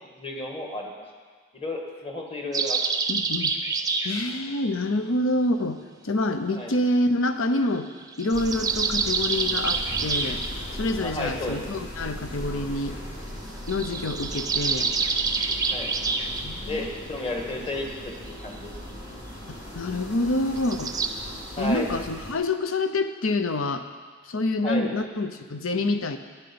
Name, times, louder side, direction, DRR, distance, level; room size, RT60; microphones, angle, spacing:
voice 1, 0.2-0.9 1.5-2.8 6.5-6.7 11.0-11.8 15.7-15.9 16.7-18.7 21.6-21.9 24.6-24.9, left 1 dB, 25° left, 1 dB, 1.7 m, -32 dB
sound 1, 2.5-4.3 8.0-10.5 13.7-16.4 20.6-21.1, right 4 dB, 20° right, 0.7 m, -27 dB
voice 2, 3.1-3.5 4.0-10.4 10.7-13.0 13.7-14.9 16.4-16.9 19.5-20.9 21.6-23.8 24.2-26.2, left 2 dB, 75° left, 9 dB, 0.8 m, -27 dB
sound 2, 8.3-22.3, equal, 55° left, 4.1 m, -38 dB
11.5 x 9.8 x 7.0 m, 1.5 s
head